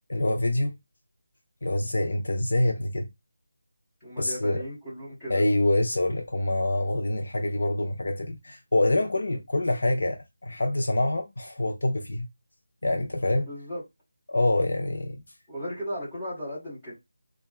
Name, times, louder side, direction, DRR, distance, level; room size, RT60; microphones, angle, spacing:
voice 1, 0.1-0.8 1.6-3.1 4.2-4.6 5.3-12.3 12.8-13.5 14.3-15.2, left 1 dB, 55° left, 0.5 m, -26 dB
voice 2, 4.0-5.4 13.4-13.8 15.5-16.9, equal, 5° left, 1.6 m, -36 dB
3.3 x 2.3 x 2.4 m
figure-of-eight pair, 180°, 0 cm